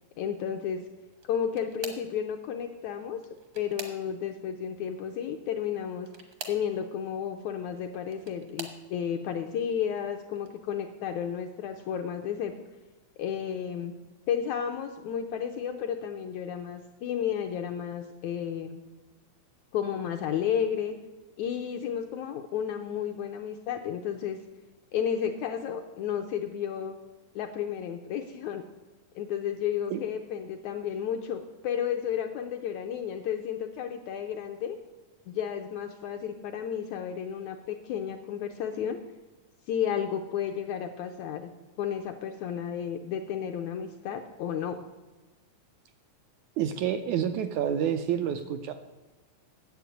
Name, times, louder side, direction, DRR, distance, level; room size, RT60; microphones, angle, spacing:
voice 1, 0.2-0.9 1.2-3.2 3.5-6.1 6.5-12.5 13.2-14.0 14.3-18.8 19.7-20.9 21.4-24.4 24.9-26.9 27.3-28.7 29.1-34.8 35.3-39.0 39.7-41.5 41.8-44.8, left 8 dB, 80° left, 5 dB, 1.7 m, -32 dB
sound 1, 1.1-2.2 3.1-4.4 6.0-6.7 7.8-8.8 9.6-9.9 10.4-10.5 11.8-11.9, right 4 dB, 60° right, 1.2 m, -44 dB
voice 2, 46.6-48.7, right 9 dB, 85° right, 8 dB, 1.7 m, -28 dB
9.6 x 7.7 x 7.9 m, 1.2 s
omnidirectional pair, 3.9 m